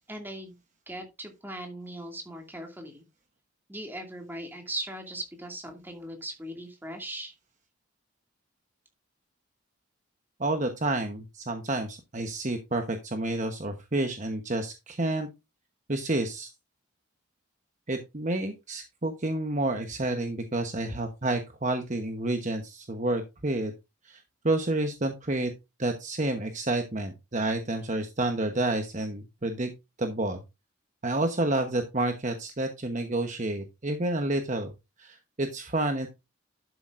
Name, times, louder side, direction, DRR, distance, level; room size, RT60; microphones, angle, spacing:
voice 1, 0.1-0.5 0.9-3.0 3.7-7.3, right 1 dB, 10° right, 3 dB, 2.4 m, -39 dB
voice 2, 10.4-15.3 15.9-16.5 17.9-23.7 24.0-24.2 24.4-25.5 25.8-29.7 30.0-30.4 31.0-34.7 35.0-36.1, right 2 dB, 35° right, 5 dB, 1.0 m, -29 dB
12.0 x 7.4 x 2.6 m, 0.24 s
head